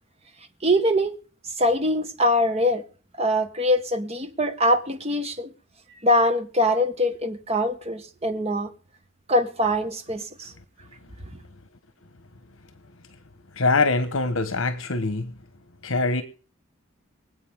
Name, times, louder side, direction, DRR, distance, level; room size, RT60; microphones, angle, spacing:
voice 1, 0.6-1.1 1.6-2.8 3.2-5.5 6.0-8.7 9.3-10.5, equal, 30° right, 1.7 m, -23 dB
voice 2, 13.6-15.3 15.8-16.2, left 3 dB, 70° left, 1.3 m, -23 dB
24.5 x 8.3 x 3.7 m
head